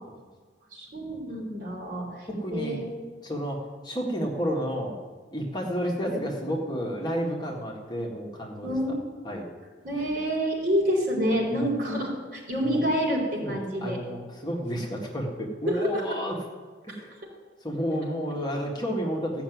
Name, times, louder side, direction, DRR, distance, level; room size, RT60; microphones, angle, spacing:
voice 1, 0.7-2.9 6.0-6.2 8.6-9.4 9.8-14.0 15.7-16.0 16.9-17.0, equal, 50° right, -3 dB, 4.2 m, -28 dB
voice 2, 2.3-2.8 3.2-5.0 5.3-8.7 9.3-9.5 11.5-11.7 12.7-12.8 13.4-16.4 16.8-17.1 17.6-19.4, equal, 25° left, -1 dB, 1.7 m, -31 dB
15.0 x 6.0 x 9.3 m, 1.4 s
head